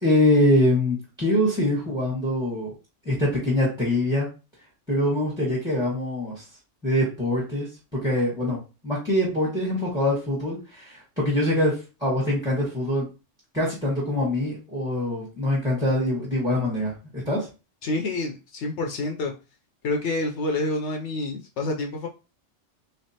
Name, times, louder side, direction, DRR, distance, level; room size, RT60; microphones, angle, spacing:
voice 1, 0.0-2.7 3.0-4.3 4.9-6.4 6.8-7.7 8.0-8.6 8.8-13.1 13.5-17.5, left 1 dB, 5° right, -6 dB, 1.1 m, -24 dB
voice 2, 17.8-19.3 19.8-22.1, left 2 dB, 75° left, 3 dB, 0.9 m, -28 dB
3.5 x 3.3 x 2.7 m, 0.31 s
omnidirectional pair, 1.3 m